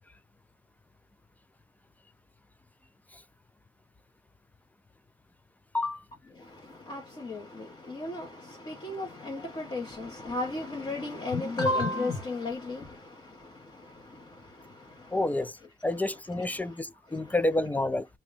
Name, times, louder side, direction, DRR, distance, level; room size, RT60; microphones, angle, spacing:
voice 1, 6.9-8.3 8.7-12.8, left 2 dB, 25° left, 1.3 m, -32 dB
voice 2, 15.1-15.6 15.8-18.1, left 2 dB, 10° left, 0.3 m, -29 dB
2.7 x 2.7 x 3.2 m
cardioid pair, 110°, 17 cm